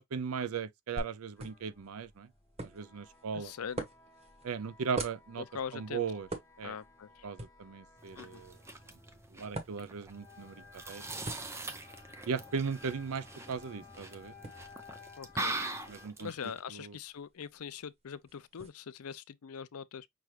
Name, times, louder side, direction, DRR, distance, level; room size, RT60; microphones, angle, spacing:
voice 1, 0.0-2.3 2.6-3.5 4.4-5.4 5.7-6.3 6.6-6.8 7.2-8.6 9.3-11.1 12.3-14.3 15.9-16.3 16.7-17.0, right 6 dB, 75° right, 0.5 m, -37 dB
sound 1, 1.0-18.7, right 2 dB, 30° right, 1.0 m, -47 dB
sound 2, 1.4-16.1, left 5 dB, 15° left, 1.0 m, -57 dB
voice 2, 3.3-3.9 5.4-6.0 6.6-7.3 8.2-8.4 15.2-15.6 16.2-20.1, left 7 dB, 75° left, 0.5 m, -42 dB
sound 3, 8.0-16.6, right 2 dB, 10° right, 0.5 m, -42 dB
5.9 x 2.4 x 3.2 m
head